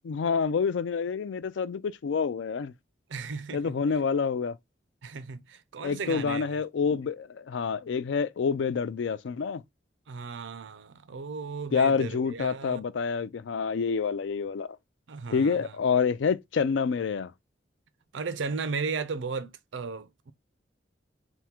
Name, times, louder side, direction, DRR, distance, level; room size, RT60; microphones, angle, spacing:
voice 1, 0.0-2.7 3.5-4.6 5.8-9.6 11.7-14.8 15.3-17.3, left 5 dB, 80° left, 0.4 m, -27 dB
voice 2, 3.1-3.7 5.0-6.6 10.1-12.8 15.1-15.7 18.1-20.3, right 4 dB, 85° right, 0.5 m, -35 dB
3.6 x 2.1 x 4.3 m
head